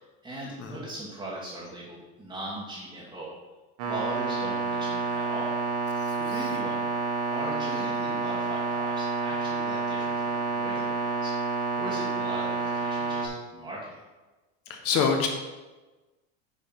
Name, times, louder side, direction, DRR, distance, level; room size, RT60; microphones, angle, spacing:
voice 1, 0.2-3.3 3.9-5.6 6.2-6.9 7.3-11.3 11.8-14.0, right 1 dB, 10° right, -7 dB, 1.6 m, -39 dB
sound 1, 3.8-13.3, right 4 dB, 70° right, 1.9 m, -29 dB
voice 2, 6.0-6.4 14.7-15.3, left 6 dB, 40° left, 3 dB, 1.1 m, -27 dB
8.9 x 4.5 x 5.8 m, 1.2 s
supercardioid pair, 150°, 38 cm